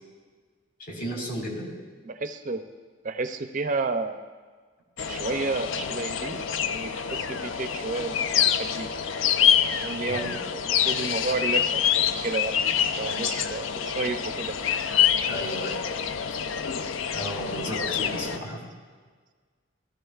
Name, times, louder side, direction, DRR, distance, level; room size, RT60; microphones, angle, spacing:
voice 1, 0.8-1.7 10.1-10.3 15.2-15.8 17.1-18.6, equal, 50° left, -1 dB, 2.5 m, -33 dB
voice 2, 2.0-2.6 3.0-4.2 5.1-8.2 8.6-8.9 9.8-14.6, right 3 dB, 40° right, 8 dB, 0.5 m, -31 dB
sound 1, 5.0-18.4, left 8 dB, 85° left, 0.5 m, -26 dB
16.0 x 14.0 x 2.4 m, 1.5 s
head